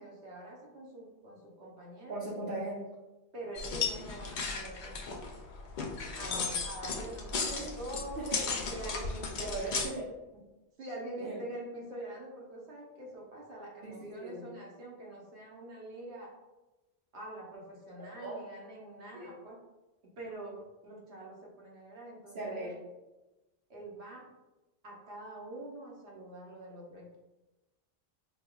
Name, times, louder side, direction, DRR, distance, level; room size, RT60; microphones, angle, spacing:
voice 1, 0.0-2.1 3.3-5.2 6.1-9.7 10.8-16.3 17.1-19.6 20.2-22.8 23.7-24.3 24.8-27.2, right 1 dB, 80° right, -3 dB, 1.2 m, -45 dB
voice 2, 2.1-2.8 6.2-6.5 7.3-7.7 8.2-8.5 9.4-10.1 11.2-11.4 13.8-14.4 18.2-18.4 19.1-19.3 22.3-22.8, right 2 dB, 60° right, -8 dB, 0.9 m, -39 dB
sound 1, 3.6-9.9, left 5 dB, 60° left, 0.6 m, -35 dB
5.2 x 2.4 x 2.2 m, 1.1 s
omnidirectional pair, 1.1 m